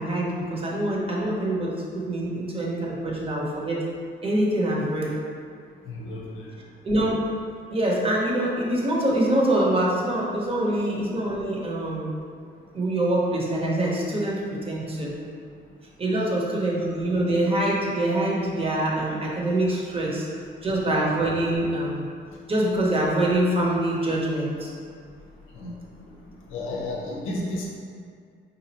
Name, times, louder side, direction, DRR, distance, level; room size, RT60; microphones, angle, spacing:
voice 1, 0.0-3.8 4.2-5.1 6.8-7.2 7.7-12.1 12.7-15.1 16.0-20.3 20.6-22.1 22.5-24.7, right 1 dB, 30° right, -4 dB, 0.8 m, -25 dB
voice 2, 5.9-6.5 25.5-25.7 26.5-27.7, left 1 dB, 90° left, -2 dB, 0.7 m, -32 dB
4.1 x 2.5 x 2.8 m, 2.2 s
cardioid pair, 90°, 20 cm